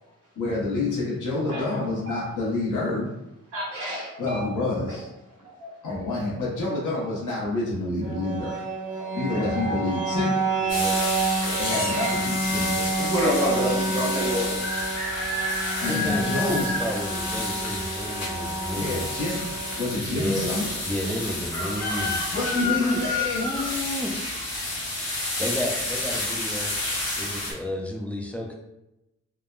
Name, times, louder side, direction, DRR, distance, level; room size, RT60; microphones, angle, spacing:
voice 1, 0.4-3.1 4.2-5.1 5.8-8.5 9.1-10.4 11.6-12.9 13.5-14.0 15.8-16.8 17.7-17.8 18.7-20.7 22.3-23.5, left 2 dB, 80° left, -5 dB, 1.1 m, -28 dB
voice 2, 1.5-2.2 3.5-4.4 4.9-5.0 5.6-6.0 8.3-8.4 9.0-10.2 10.5-11.1 11.4-11.8 13.0-14.6, equal, 75° right, -5 dB, 1.5 m, -30 dB
sound 1, 8.0-22.0, right 2 dB, 40° right, 0.7 m, -30 dB
sound 2, 10.7-27.5, left 2 dB, 60° left, 1.0 m, -30 dB
voice 3, 10.7-11.0 15.8-19.0 20.2-20.5 20.8-22.2 22.6-23.0 23.4-24.2 25.4-26.7 27.2-28.5, left 1 dB, 5° left, 0 dB, 0.4 m, -31 dB
3.5 x 2.1 x 2.4 m, 0.92 s
wide cardioid pair, 125°, 30 cm